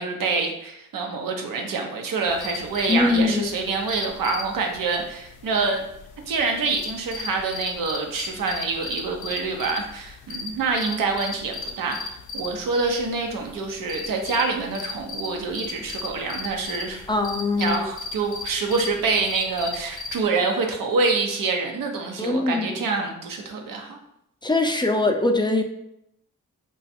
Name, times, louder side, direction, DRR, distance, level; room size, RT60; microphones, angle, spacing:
voice 1, 0.0-5.8 6.3-17.0 17.6-24.0, right 4 dB, 85° right, 3 dB, 0.6 m, -26 dB
sound 1, 2.3-20.2, left 4 dB, 70° left, 0.5 m, -37 dB
voice 2, 2.9-3.6 17.1-17.9 22.2-22.8 24.4-25.6, left 2 dB, 15° left, 4 dB, 0.4 m, -22 dB
2.4 x 2.3 x 4.0 m, 0.77 s
cardioid pair, 45°, 32 cm